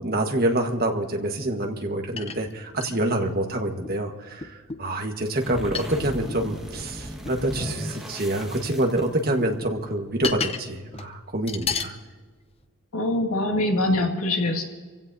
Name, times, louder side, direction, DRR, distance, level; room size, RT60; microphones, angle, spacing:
voice 1, 0.0-12.0, right 1 dB, 45° right, 3 dB, 1.4 m, -26 dB
sound 1, 1.8-1.9 2.2-3.3 3.8-4.0 4.4-4.9 5.7-6.4 7.2-7.4 8.6-9.1 9.4-10.7 10.9-11.1 11.5-11.9 12.6-12.7, left 5 dB, 25° left, 0.6 m, -32 dB
sound 2, 5.2-9.5, equal, ahead, 1.5 m, -36 dB
voice 2, 12.9-14.6, left 1 dB, 80° left, 1 dB, 2.2 m, -23 dB
27.0 x 16.0 x 2.7 m, 1.5 s
head